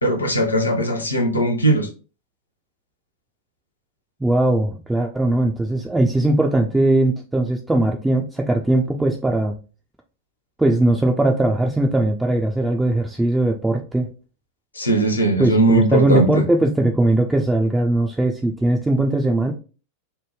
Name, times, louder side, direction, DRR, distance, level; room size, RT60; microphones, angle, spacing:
voice 1, 0.0-1.9 14.7-16.4, right 2 dB, 75° left, 3 dB, 0.7 m, -19 dB
voice 2, 4.2-9.5 10.6-14.1 15.4-19.5, right 1 dB, 5° right, 1 dB, 0.3 m, -19 dB
3.3 x 2.1 x 3.0 m, 0.35 s
figure-of-eight pair, 90°, 0 cm